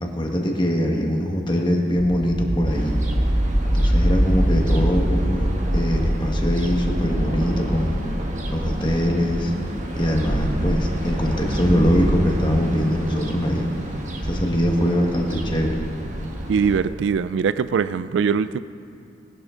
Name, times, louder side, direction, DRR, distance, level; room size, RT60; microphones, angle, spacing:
voice 1, 0.0-3.0 3.7-8.0 8.5-9.5 9.9-13.7 14.2-15.8, equal, 25° left, 0 dB, 1.5 m, -22 dB
sound 1, 2.0-12.7, equal, 15° right, 1.2 m, -24 dB
sound 2, 2.7-16.8, right 1 dB, 40° right, 1.3 m, -29 dB
voice 2, 16.5-18.6, right 6 dB, 85° right, 15 dB, 0.3 m, -22 dB
19.0 x 11.5 x 3.8 m, 2.7 s
head